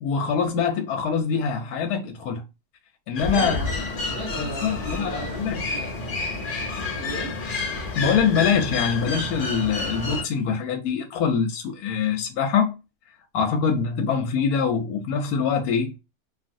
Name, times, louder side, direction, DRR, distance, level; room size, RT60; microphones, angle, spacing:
voice 1, 0.0-2.4 3.1-3.6 4.3-5.8 8.0-12.7 13.3-15.9, left 6 dB, 70° left, 1.0 m, -24 dB
sound 1, 3.2-10.2, left 3 dB, 50° left, 0.6 m, -29 dB
voice 2, 3.3-6.0 7.0-7.3, right 1 dB, 40° right, 1.3 m, -35 dB
3.3 x 2.4 x 2.5 m
omnidirectional pair, 1.9 m